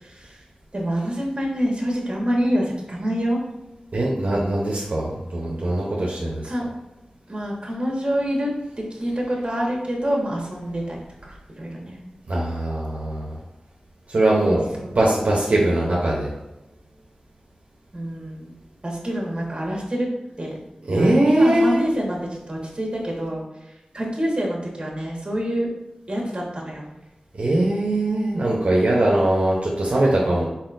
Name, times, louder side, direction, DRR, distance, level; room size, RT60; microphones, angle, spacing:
voice 1, 0.0-0.4 0.7-3.4 6.4-6.6 7.3-8.5 8.8-11.0 11.2-12.0 14.8-15.1 17.9-18.5 18.8-20.1 20.4-20.6 20.9-23.4 23.9-25.7 26.1-26.9, equal, 40° right, -1 dB, 1.4 m, -26 dB
voice 2, 3.9-6.5 12.3-13.3 14.1-14.6 14.9-16.3 20.8-21.8 27.3-30.4, right 1 dB, 65° right, -4 dB, 0.8 m, -21 dB
4.2 x 4.1 x 2.6 m, 1.0 s
cardioid pair, 45°, 3 cm